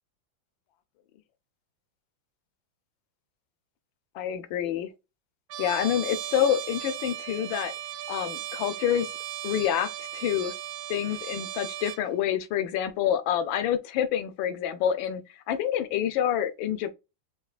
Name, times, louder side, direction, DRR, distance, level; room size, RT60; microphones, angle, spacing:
voice 1, 4.1-4.9 5.6-7.7 8.1-9.1 9.4-10.5 10.9-16.9, left 10 dB, 90° left, 1.4 m, -27 dB
Trumpet, 5.5-12.0, right 11 dB, 75° right, 1.0 m, -37 dB
5.4 x 2.9 x 2.3 m
omnidirectional pair, 2.1 m